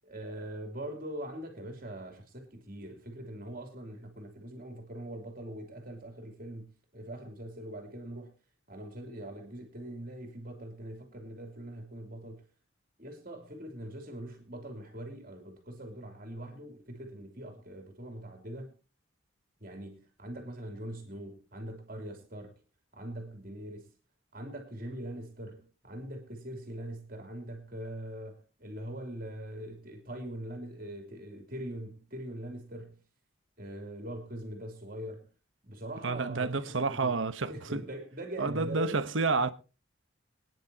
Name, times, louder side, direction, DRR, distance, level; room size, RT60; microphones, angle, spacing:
voice 1, 0.1-8.3 8.7-12.4 13.0-18.7 19.6-22.6 22.9-23.9 24.3-33.0 33.6-35.3 35.6-37.2 37.5-39.5, right 1 dB, 45° right, 3.0 m, -42 dB
voice 2, 36.0-37.8 38.4-39.5, right 4 dB, 70° right, 1.0 m, -29 dB
24.0 x 10.0 x 2.9 m
head